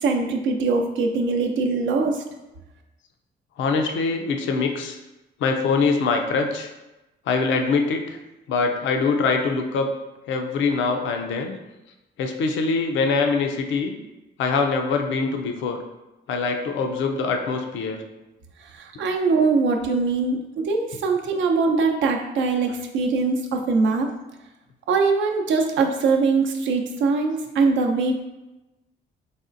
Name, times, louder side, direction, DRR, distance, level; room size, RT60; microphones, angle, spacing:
voice 1, 0.0-2.2 18.8-24.1 24.9-28.1, right 4 dB, 75° right, 2 dB, 0.6 m, -22 dB
voice 2, 3.6-5.0 5.4-6.7 7.3-8.2 8.5-9.9 10.3-11.6 12.2-13.9 14.4-15.8 16.3-18.0, left 4 dB, 70° left, 4 dB, 0.5 m, -23 dB
4.2 x 3.1 x 2.5 m, 1.0 s
cardioid pair, 90°, 20 cm